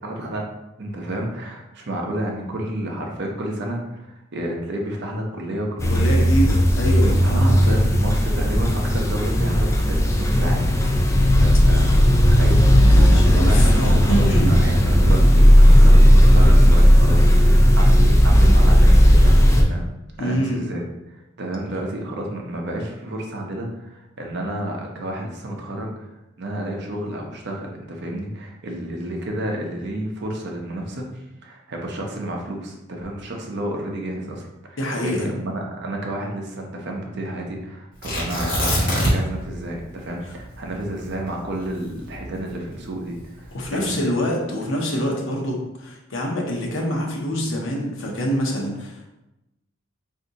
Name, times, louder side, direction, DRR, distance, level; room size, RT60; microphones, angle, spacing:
voice 1, 0.0-0.5 0.8-6.3 7.2-11.1 11.4-19.8 20.2-26.1 26.4-31.1 31.4-44.0, right 1 dB, 55° right, 1 dB, 0.6 m, -30 dB
sound 1, 5.8-19.6, equal, 15° left, 0.3 m, -14 dB
voice 2, 5.9-7.8 12.9-14.5 20.2-20.6 34.8-35.3 40.3-40.4 43.5-49.1, equal, 65° left, -1 dB, 0.7 m, -25 dB
Tearing, 38.0-39.4 39.7-39.8 40.3-42.7 43.4-43.9, equal, 45° left, 1.2 m, -23 dB
2.7 x 2.6 x 3.9 m, 0.94 s
head